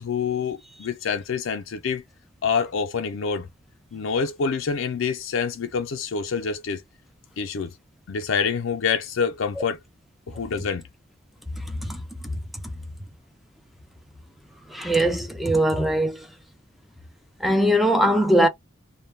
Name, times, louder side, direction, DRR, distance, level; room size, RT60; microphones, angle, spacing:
voice 1, 0.0-2.0 2.4-3.5 3.9-6.8 7.4-7.7 8.1-9.8 10.3-10.8, left 6 dB, 70° left, 0.4 m, -26 dB
voice 2, 11.7-12.0 14.7-16.3 17.4-18.5, right 1 dB, ahead, 0.5 m, -21 dB
2.2 x 2.1 x 3.2 m
head